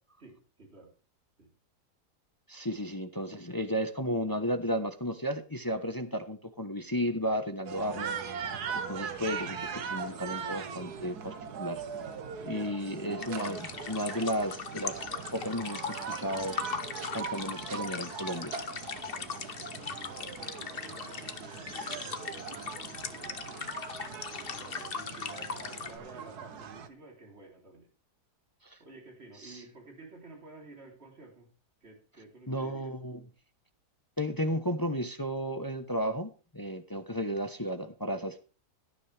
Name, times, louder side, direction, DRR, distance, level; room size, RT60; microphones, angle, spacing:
voice 1, 0.2-0.9 1.4-1.5 2.8-3.0 12.4-13.1 19.7-23.7 24.3-27.9 28.8-31.5 31.8-32.9, right 2 dB, 40° right, 1 dB, 3.7 m, -52 dB
voice 2, 2.5-11.8 12.5-15.0 15.3-16.6 17.1-18.6 28.6-28.8 29.4-29.6 32.5-33.2 34.2-38.4, equal, 15° left, 8 dB, 0.8 m, -33 dB
sound 1, 7.6-26.9, right 6 dB, 70° right, 1.7 m, -40 dB
sound 2, 13.2-26.0, left 5 dB, 40° left, 1.1 m, -39 dB
17.5 x 10.0 x 3.4 m, 0.34 s
omnidirectional pair, 1.8 m